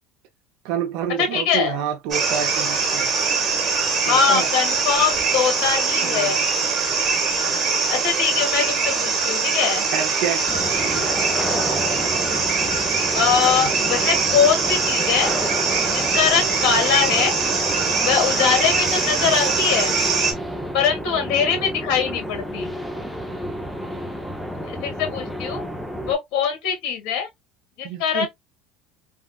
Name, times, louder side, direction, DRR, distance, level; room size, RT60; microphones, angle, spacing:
voice 1, 0.6-3.1 4.0-4.5 6.0-6.4 9.9-10.4 10.8-11.1 13.4-13.6 27.8-28.3, right 8 dB, 70° right, 0.6 m, -28 dB
voice 2, 1.2-1.8 4.0-6.4 7.9-9.9 13.1-15.3 15.9-17.3 18.0-19.9 20.7-22.7 24.7-25.6 26.0-27.3 27.8-28.3, left 7 dB, 65° left, 1.5 m, -22 dB
sound 1, 2.1-20.3, right 4 dB, 35° right, 1.1 m, -22 dB
sound 2, 10.5-26.1, equal, ahead, 0.5 m, -30 dB
3.5 x 2.3 x 2.2 m
cardioid pair, 140°, 0 cm